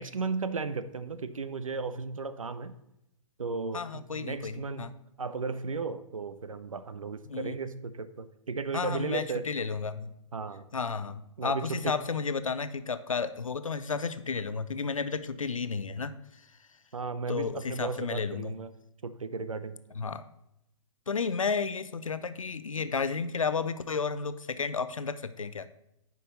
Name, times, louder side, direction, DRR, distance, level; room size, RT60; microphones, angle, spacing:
voice 1, 0.0-2.8 3.4-9.5 10.3-10.7 11.4-12.0 16.9-18.7 19.0-19.8, right 4 dB, 75° right, 12 dB, 0.6 m, -35 dB
voice 2, 3.7-4.9 7.3-7.6 8.7-10.1 10.7-16.5 17.3-18.6 20.0-20.3 21.1-25.7, left 5 dB, 75° left, 13 dB, 0.6 m, -32 dB
9.2 x 5.4 x 4.0 m, 0.83 s
figure-of-eight pair, 115°, 17 cm